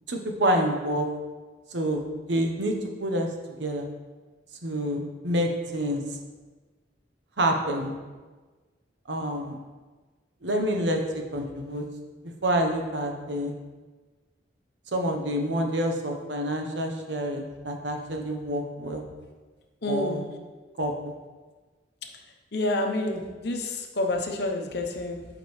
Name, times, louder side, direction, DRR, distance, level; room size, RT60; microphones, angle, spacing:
voice 1, 0.1-1.1 1.7-2.7 3.0-3.3 3.6-3.9 4.6-6.0 7.4-8.0 9.1-9.6 10.4-11.8 12.4-13.5 14.9-19.1 19.9-20.2 20.8-21.1, right 1 dB, 75° right, 3 dB, 1.0 m, -27 dB
voice 2, 19.8-20.3 22.0-22.2 22.5-25.3, left 2 dB, 60° left, 3 dB, 0.9 m, -29 dB
11.0 x 5.1 x 3.3 m, 1.3 s
head